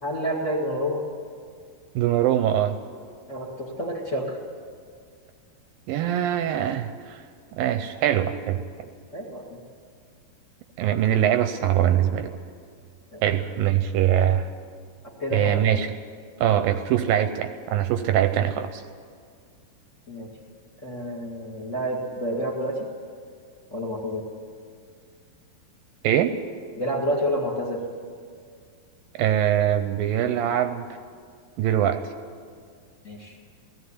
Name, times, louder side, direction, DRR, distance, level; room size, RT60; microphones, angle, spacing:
voice 1, 0.0-1.0 3.3-4.4 9.1-9.6 13.1-13.2 15.2-15.7 20.1-20.3 20.8-22.9 23.7-24.3 26.8-27.8 33.0-33.4, equal, 25° left, 0 dB, 1.7 m, -29 dB
voice 2, 2.0-2.8 5.9-7.2 7.5-8.6 10.8-12.3 13.2-14.5 15.3-15.9 16.4-18.8 26.0-26.4 29.1-30.8 31.6-32.0, right 11 dB, 75° right, 9 dB, 2.3 m, -22 dB
17.5 x 15.0 x 9.8 m, 2.1 s
omnidirectional pair, 4.5 m